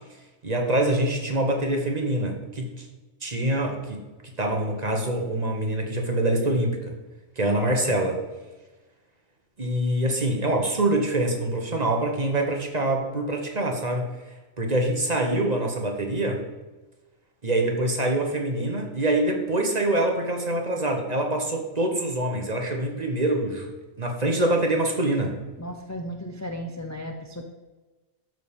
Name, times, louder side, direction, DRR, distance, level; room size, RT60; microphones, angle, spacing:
voice 1, 0.4-2.9 3.2-6.9 7.4-8.2 9.6-14.1 14.6-16.4 17.4-23.7 24.0-25.4, right 1 dB, 30° right, 2 dB, 1.4 m, -25 dB
voice 2, 25.6-27.5, equal, 20° left, 4 dB, 0.5 m, -35 dB
12.5 x 4.8 x 5.4 m, 1.2 s
omnidirectional pair, 1.4 m